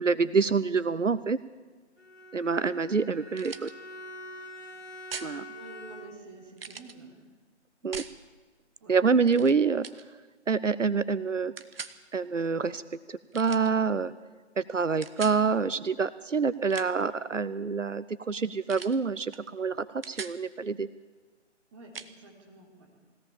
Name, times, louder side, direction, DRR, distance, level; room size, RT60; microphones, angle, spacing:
voice 1, 0.0-1.4 2.3-3.7 5.2-5.4 7.8-8.0 8.9-9.9 10.5-11.5 12.1-12.8 13.1-14.1 14.6-20.9, right 5 dB, 90° right, 16 dB, 0.8 m, -27 dB
Bowed string instrument, 2.0-6.4, left 1 dB, 60° left, 4.0 m, -45 dB
sound 1, 3.4-3.7 5.1-5.3 6.6-7.0 7.9-8.2 9.3-9.5 9.8-10.0 11.6-12.0 13.3-13.7 15.0-15.4 16.5-17.1 18.7-19.0 19.3-19.5 19.8-20.4 21.9-22.1, right 5 dB, 50° right, 1.2 m, -41 dB
voice 2, 5.5-7.2 8.8-9.0 21.7-22.9, right 2 dB, 25° right, 1 dB, 3.7 m, -49 dB
21.0 x 17.0 x 7.2 m, 1.3 s
figure-of-eight pair, 150°, 36 cm